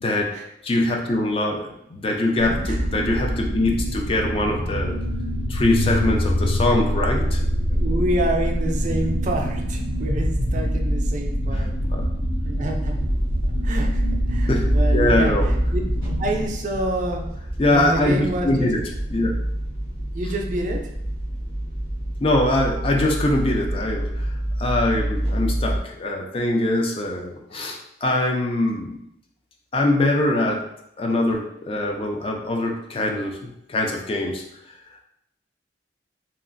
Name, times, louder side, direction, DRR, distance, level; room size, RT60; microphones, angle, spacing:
voice 1, 0.0-0.3 0.6-4.9 5.5-7.4 11.5-11.6 11.9-12.0 14.5-15.5 17.6-18.8 19.1-19.3 22.2-29.0 29.7-30.6 31.0-33.4 33.7-34.4, left 1 dB, 30° left, 1 dB, 0.3 m, -23 dB
sound 1, 2.4-16.5, equal, 80° left, 0.6 m, -24 dB
voice 2, 7.7-11.7 12.4-12.9 13.6-14.0 14.3-15.8 16.2-17.3 17.7-18.7 20.1-20.8, right 1 dB, 45° right, 2 dB, 0.4 m, -28 dB
sound 2, 12.6-25.8, right 1 dB, 60° left, 1.4 m, -28 dB
2.9 x 2.4 x 2.5 m, 0.78 s
head